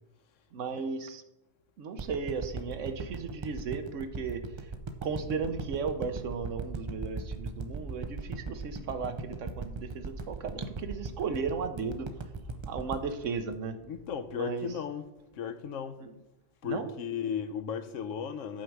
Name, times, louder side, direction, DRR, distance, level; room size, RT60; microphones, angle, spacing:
voice 1, 0.5-1.2 1.8-4.7 5.0-12.1 12.7-13.7 14.3-14.7 16.0-16.1 16.6-16.9, right 5 dB, 80° right, 1.2 m, -35 dB
sound 1, 2.0-14.3 14.7-14.8, right 3 dB, 40° right, 0.4 m, -38 dB
voice 2, 13.9-15.1 15.3-16.0 16.6-18.6, left 7 dB, 80° left, 1.0 m, -35 dB
8.8 x 6.3 x 4.6 m
omnidirectional pair, 1.3 m